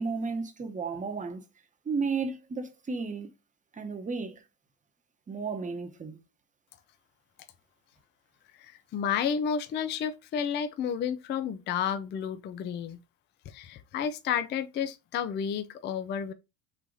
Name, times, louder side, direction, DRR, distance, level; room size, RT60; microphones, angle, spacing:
voice 1, 0.0-1.4 1.8-3.3 3.7-4.4 5.3-6.2, right 4 dB, 15° right, 0.9 m, -33 dB
voice 2, 8.6-13.0 13.5-16.3, left 7 dB, 25° left, 0.4 m, -31 dB
3.9 x 2.7 x 4.6 m
supercardioid pair, 100°, 45 cm